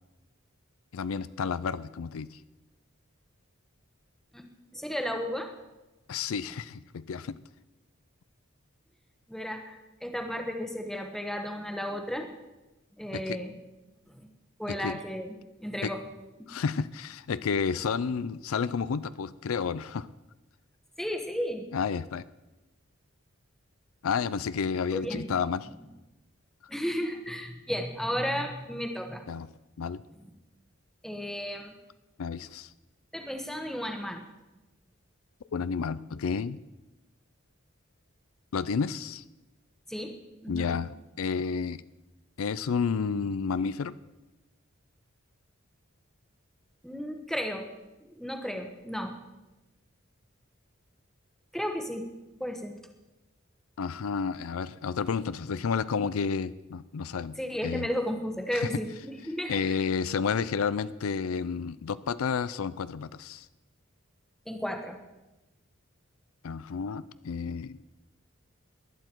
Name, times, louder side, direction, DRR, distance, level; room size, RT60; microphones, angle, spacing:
voice 1, 0.9-2.4 6.1-7.4 13.1-13.4 14.7-15.0 15.8-15.9 16.5-20.1 21.7-22.2 24.0-25.7 29.3-29.5 29.8-30.0 32.2-32.7 35.5-36.6 38.5-39.2 40.5-41.8 42.4-43.9 53.8-57.4 57.6-57.9 58.5-58.7 59.5-63.5 66.4-67.8, left 5 dB, 85° left, 16 dB, 0.4 m, -31 dB
voice 2, 4.3-5.5 9.3-12.3 13.0-13.5 14.1-14.3 14.6-15.3 15.6-16.0 16.4-16.5 21.0-21.7 24.9-25.3 26.7-29.2 31.0-31.7 33.1-34.3 39.9-40.2 40.4-40.7 46.8-47.7 48.2-49.1 51.5-52.1 52.4-52.8 57.4-59.8 64.5-65.0, equal, ahead, 5 dB, 1.1 m, -34 dB
19.0 x 11.5 x 4.5 m, 1.0 s
head